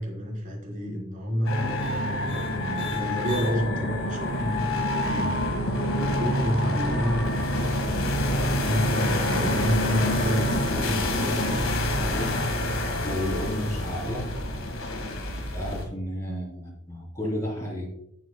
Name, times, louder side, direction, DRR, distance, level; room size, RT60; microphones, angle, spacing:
voice 1, 0.0-1.6 2.1-5.0 5.3-11.7 16.3-16.4, equal, 35° right, -3 dB, 4.2 m, -30 dB
sound 1, 1.5-15.8, left 1 dB, 65° left, 1.9 m, -27 dB
voice 2, 5.1-5.4 12.1-12.4 13.0-14.3 15.5-17.9, left 1 dB, 15° left, -4 dB, 4.0 m, -32 dB
15.5 x 8.0 x 2.3 m, 0.79 s
head